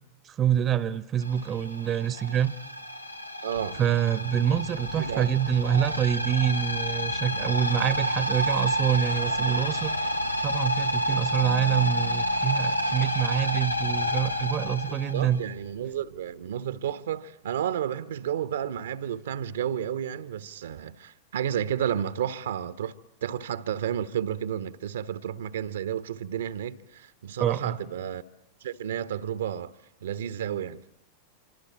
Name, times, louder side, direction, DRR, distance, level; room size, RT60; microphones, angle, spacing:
voice 1, 0.2-2.5 3.8-9.9 10.4-15.4 27.4-27.8, right 9 dB, 30° right, 1.0 m, -26 dB
sound 1, 1.2-15.8, equal, 90° left, 1.2 m, -29 dB
voice 2, 3.4-3.8 4.9-5.3 15.1-22.9 23.2-28.2 28.6-29.7 30.0-30.8, right 9 dB, 60° right, 1.0 m, -31 dB
Keyboard (musical), 11.4-14.1, left 10 dB, 60° left, 2.0 m, -47 dB
27.0 x 25.5 x 8.5 m
figure-of-eight pair, 90°, 0 cm